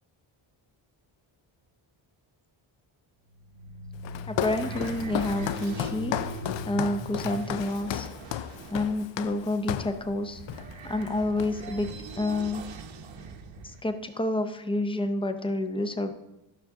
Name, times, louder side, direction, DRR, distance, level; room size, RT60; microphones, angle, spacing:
sound 1, 3.3-13.8, right 2 dB, 65° right, 0.9 m, -41 dB
Walk footsteps, 4.0-10.0 10.5-10.7 11.0-11.8, left 11 dB, 65° left, 0.5 m, -34 dB
voice 1, 4.3-6.1 6.7-8.1 8.7-10.4 10.8-11.9 12.2-12.6 13.6-16.1, left 2 dB, 10° left, 8 dB, 0.5 m, -29 dB
12.5 x 6.4 x 3.6 m, 0.95 s
wide cardioid pair, 145°, 49 cm